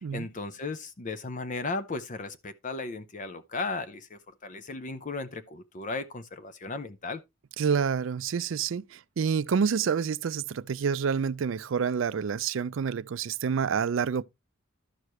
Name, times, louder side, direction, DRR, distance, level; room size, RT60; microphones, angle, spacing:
voice 1, 0.1-7.2, left 3 dB, 40° left, 0.6 m, -36 dB
voice 2, 7.6-14.2, right 6 dB, 65° right, 0.4 m, -28 dB
12.0 x 6.4 x 3.1 m
head